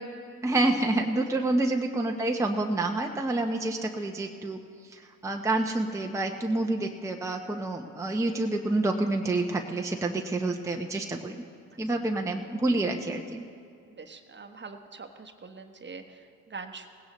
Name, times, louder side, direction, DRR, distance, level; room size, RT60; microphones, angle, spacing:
voice 1, 0.4-4.6 5.2-11.4 11.8-13.4, right 2 dB, 10° right, 2 dB, 0.9 m, -28 dB
voice 2, 13.9-16.9, right 4 dB, 30° right, 6 dB, 1.2 m, -44 dB
18.5 x 16.5 x 3.1 m, 2.4 s
supercardioid pair, 60°, 38 cm